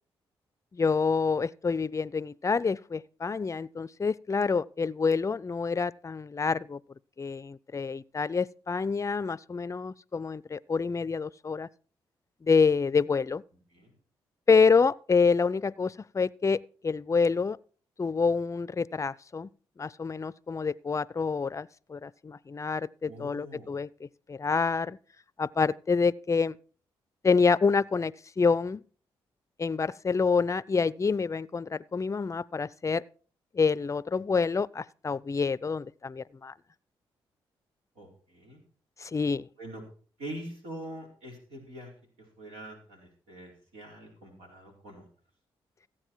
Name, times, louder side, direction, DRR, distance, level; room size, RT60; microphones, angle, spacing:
voice 1, 0.7-6.8 7.2-11.7 12.4-13.4 14.5-17.6 18.0-19.5 19.8-25.0 25.4-26.6 27.2-28.8 29.6-33.0 33.5-36.5 39.0-39.5, left 5 dB, 30° left, 0.5 m, -27 dB
voice 2, 23.0-23.7 38.0-38.1 38.3-38.6 39.6-39.8 40.2-41.9 42.4-45.1, right 1 dB, 80° right, 4.6 m, -43 dB
15.0 x 8.7 x 4.6 m
supercardioid pair, 50°, 11 cm